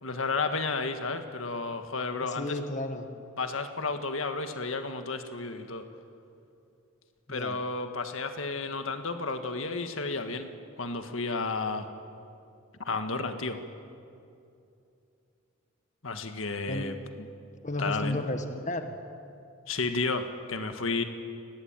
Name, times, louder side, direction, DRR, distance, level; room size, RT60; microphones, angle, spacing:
voice 1, 0.0-2.6 3.4-5.8 7.3-10.5 10.8-11.9 12.8-13.6 16.0-17.3 17.8-18.2 19.7-21.0, left 3 dB, 70° left, 7 dB, 1.7 m, -32 dB
voice 2, 2.4-3.1 7.3-7.6 16.7-16.9 17.6-18.9, left 1 dB, 35° left, 6 dB, 1.5 m, -32 dB
29.5 x 19.5 x 9.1 m, 2.6 s
head